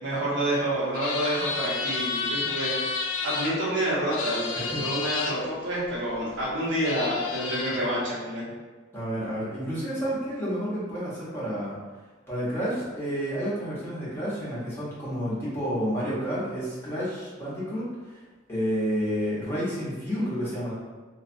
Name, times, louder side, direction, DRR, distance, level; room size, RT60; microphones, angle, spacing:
voice 1, 0.0-2.7 3.2-8.5, right 1 dB, 75° right, -8 dB, 1.1 m, -28 dB
sound 1, 0.9-3.5 4.1-5.3 6.4-6.5 6.8-7.8, left 4 dB, 80° left, 0.3 m, -31 dB
voice 2, 8.9-11.8 12.3-18.2 18.5-20.7, equal, 15° left, -9 dB, 0.9 m, -30 dB
2.5 x 2.3 x 2.6 m, 1.3 s
head